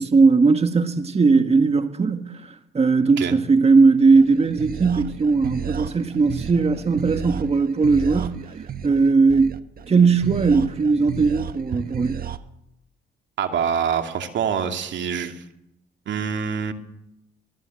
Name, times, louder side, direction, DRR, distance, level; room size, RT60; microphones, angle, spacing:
voice 1, 0.0-8.6 8.8-9.6 9.9-12.2, right 4 dB, 30° right, 1.7 m, -18 dB
sound 1, 4.2-12.4, right 7 dB, 50° right, 1.3 m, -34 dB
voice 2, 13.4-15.4 16.1-16.7, right 7 dB, 65° right, 2.6 m, -25 dB
23.0 x 21.5 x 7.8 m
cardioid pair, 90°, 20 cm